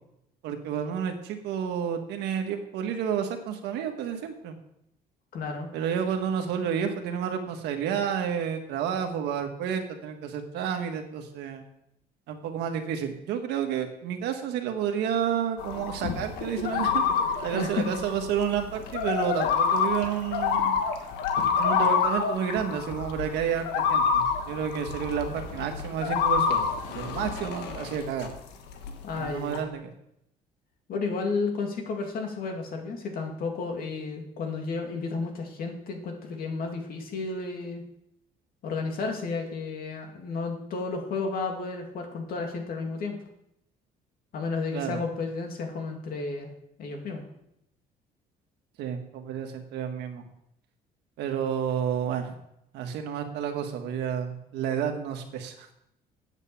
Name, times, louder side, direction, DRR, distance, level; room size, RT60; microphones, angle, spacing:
voice 1, 0.4-4.5 5.7-11.7 12.3-17.0 17.4-20.7 21.6-28.3 29.1-29.9 44.7-45.0 48.8-50.2 51.2-52.3 52.7-55.7, right 8 dB, 85° right, 5 dB, 1.5 m, -30 dB
voice 2, 5.3-5.7 17.5-17.8 29.0-29.6 30.9-37.8 38.6-43.2 44.3-46.5 46.8-47.3, left 4 dB, 60° left, 3 dB, 2.5 m, -32 dB
sound 1, 15.6-28.4 28.7-29.6, left 6 dB, 90° left, 1.3 m, -28 dB
8.3 x 8.2 x 7.1 m, 0.80 s
cardioid pair, 110°, 17 cm